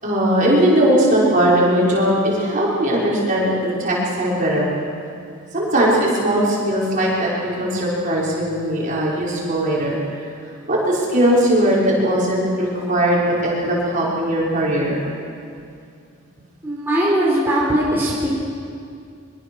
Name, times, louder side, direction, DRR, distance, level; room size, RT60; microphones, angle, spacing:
voice 1, 0.0-4.7 5.5-10.3 10.7-15.0 17.5-17.6, right 1 dB, 40° right, -5 dB, 5.8 m, -19 dB
voice 2, 16.6-18.3, right 1 dB, 10° right, -6 dB, 3.9 m, -19 dB
24.0 x 22.5 x 6.5 m, 2.4 s
head